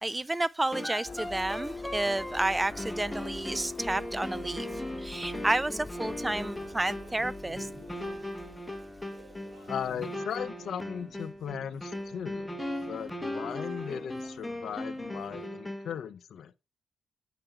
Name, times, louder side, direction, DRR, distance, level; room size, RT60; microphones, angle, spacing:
voice 1, 0.0-7.7, right 2 dB, 15° right, 0.3 m, -31 dB
sound 1, 0.7-16.0, left 1 dB, 10° left, 1.1 m, -38 dB
sound 2, 1.1-10.5, left 3 dB, 35° left, 1.2 m, -45 dB
sound 3, 5.9-15.5, right 3 dB, 50° right, 3.6 m, -53 dB
voice 2, 9.7-12.5 12.9-16.5, left 8 dB, 70° left, 0.6 m, -37 dB
8.9 x 5.0 x 4.4 m
supercardioid pair, 55°, 0 cm